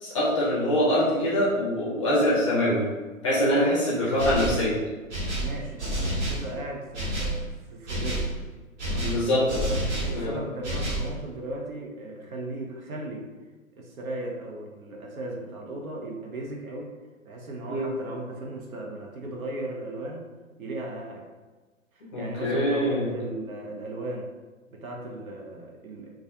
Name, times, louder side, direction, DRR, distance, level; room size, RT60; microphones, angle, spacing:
voice 1, 0.0-2.9 3.2-4.8 9.0-9.7 10.1-10.4 17.7-17.9 22.1-23.1, equal, 25° left, -7 dB, 0.5 m, -24 dB
voice 2, 3.6-4.2 5.4-7.4 7.7-8.3 8.9-9.2 9.7-13.3 13.8-16.9 17.2-20.2 20.6-21.2 21.9-24.3 24.7-26.1, right 2 dB, 80° right, -1 dB, 0.7 m, -36 dB
sound 1, 4.2-4.7 5.1-6.5 6.9-7.4 7.9-8.3 8.8-10.2 10.6-11.1, right 1 dB, 55° right, 1.0 m, -29 dB
2.3 x 2.1 x 2.6 m, 1.3 s
figure-of-eight pair, 130°, 41 cm